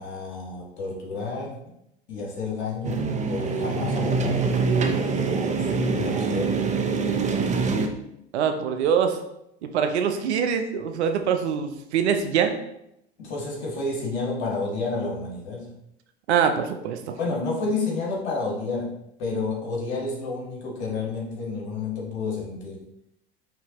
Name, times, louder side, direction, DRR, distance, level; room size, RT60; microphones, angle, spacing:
voice 1, 0.0-1.6 2.1-4.6 5.1-6.7 13.2-15.8 17.2-22.9, left 3 dB, 75° left, -2 dB, 1.5 m, -30 dB
sound 1, 2.8-7.9, right 4 dB, 20° right, 0.5 m, -24 dB
voice 2, 8.3-9.2 9.6-12.6 16.3-17.2, right 7 dB, 80° right, 6 dB, 0.6 m, -24 dB
5.6 x 2.8 x 2.9 m, 0.80 s
hypercardioid pair, 85°, 33 cm